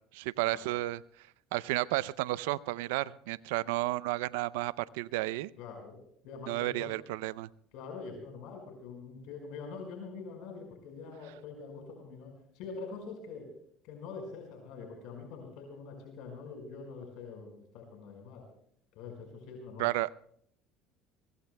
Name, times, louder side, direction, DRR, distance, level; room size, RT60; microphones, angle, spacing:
voice 1, 0.1-1.0 1.5-5.5 6.5-7.5 19.8-20.1, right 18 dB, 85° right, 19 dB, 0.5 m, -32 dB
voice 2, 5.6-6.0 6.2-6.9 7.7-13.5 13.8-18.4 19.0-19.9, left 4 dB, 70° left, 2 dB, 5.0 m, -44 dB
23.0 x 23.0 x 2.2 m, 0.66 s
supercardioid pair, 100°, 0 cm